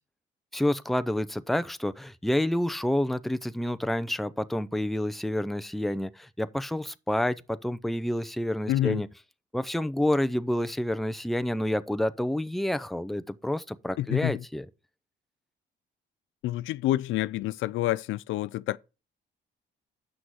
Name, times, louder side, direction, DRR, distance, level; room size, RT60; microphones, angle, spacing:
voice 1, 0.5-9.1 9.5-14.7, left 1 dB, ahead, 0.5 m, -28 dB
voice 2, 8.7-9.0 14.0-14.4 16.4-18.8, left 14 dB, 80° left, 0.4 m, -28 dB
7.7 x 6.1 x 4.8 m
cardioid pair, 90°, 20 cm